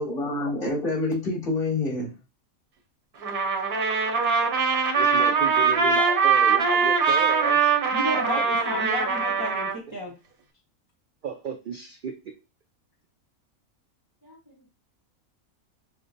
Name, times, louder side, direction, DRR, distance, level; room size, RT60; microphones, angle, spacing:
voice 1, 0.0-2.1, left 2 dB, 55° left, 2.9 m, -27 dB
Trumpet, 3.2-9.8, right 5 dB, 90° right, 1.4 m, -22 dB
voice 2, 4.9-7.7 8.1-8.6 11.2-12.1, right 6 dB, 70° right, 0.5 m, -33 dB
voice 3, 7.9-10.1 14.2-14.6, left 1 dB, 20° right, 0.6 m, -33 dB
6.1 x 2.1 x 2.6 m
omnidirectional pair, 1.5 m